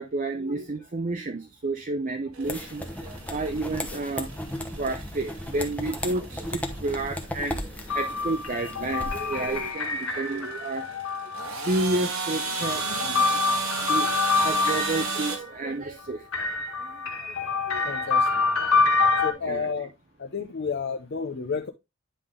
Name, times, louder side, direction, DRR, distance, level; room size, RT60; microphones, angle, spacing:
voice 1, 0.0-4.4 4.7-10.9 11.2-11.3 11.7-16.3 16.8-17.3 17.7-17.9 19.1-19.7, right 2 dB, 40° right, 0.6 m, -31 dB
sound 1, 2.3-15.4, right 4 dB, 80° right, 1.7 m, -35 dB
sound 2, 2.4-9.7, left 1 dB, 5° left, 0.9 m, -36 dB
sound 3, 7.9-11.7 12.4-15.5 16.3-19.3, left 4 dB, 80° left, 1.8 m, -26 dB
voice 2, 17.8-18.3 19.2-19.9 20.2-21.7, left 5 dB, 50° left, 0.6 m, -31 dB
10.0 x 3.6 x 3.6 m
head